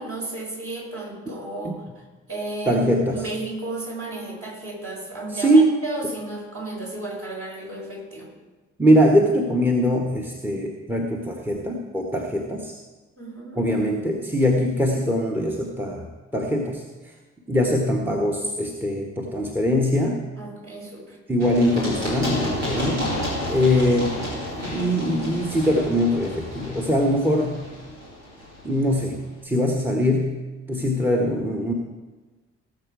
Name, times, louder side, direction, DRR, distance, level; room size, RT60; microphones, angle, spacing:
voice 1, 0.0-1.7 2.3-8.3 13.2-13.6 20.4-21.2, right 2 dB, 40° right, -2 dB, 5.0 m, -33 dB
voice 2, 2.7-3.2 5.3-5.7 8.8-12.8 13.6-16.1 16.3-16.8 17.5-20.3 21.3-23.1 23.5-24.2 24.7-27.6 28.6-30.4 30.7-31.7, equal, 5° right, 2 dB, 1.4 m, -22 dB
Run, 21.4-29.0, left 1 dB, 85° right, 2.4 m, -31 dB
18.0 x 7.4 x 4.8 m, 1.2 s
figure-of-eight pair, 45°, 36 cm